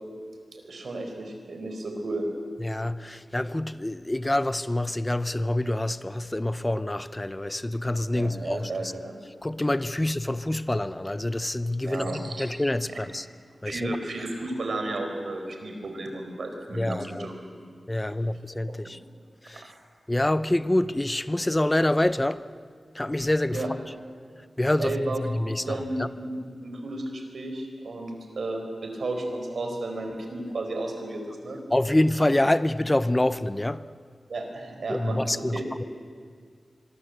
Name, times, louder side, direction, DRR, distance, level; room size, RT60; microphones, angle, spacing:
voice 1, 0.5-2.3 8.1-9.2 11.8-12.5 12.9-13.1 13.6-17.6 18.0-18.1 18.7-18.9 19.5-19.7 23.5-23.7 24.8-25.2 25.6-31.6 34.3-35.7, right 2 dB, 75° right, 4.5 m, -33 dB
voice 2, 2.6-8.9 9.4-13.2 13.6-13.8 16.8-17.3 17.9-19.0 19.5-19.6 20.1-22.4 22.9-23.6 24.6-26.1 31.7-33.8 34.9-35.8, left 1 dB, 15° left, 0.7 m, -26 dB
25.5 x 23.0 x 8.0 m
wide cardioid pair, 120°, 0 cm